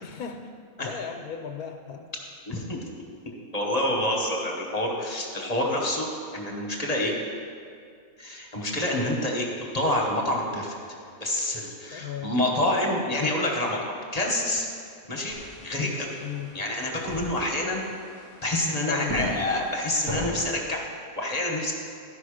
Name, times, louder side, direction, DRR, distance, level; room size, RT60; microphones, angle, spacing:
voice 1, 0.0-0.4 0.8-2.1 11.9-12.4 16.2-16.5 18.9-19.3, left 7 dB, 80° left, 4 dB, 1.1 m, -36 dB
voice 2, 2.5-2.8 3.5-6.1 6.3-7.2 8.2-9.5 9.7-10.8 11.2-14.7 15.1-15.4 15.6-16.1 16.5-17.8 18.4-20.9 21.2-21.7, left 1 dB, 30° left, -1 dB, 0.9 m, -27 dB
sound 1, 15.3-20.6, equal, 80° right, 3.1 m, -38 dB
12.0 x 5.3 x 5.0 m, 2.3 s
omnidirectional pair, 1.6 m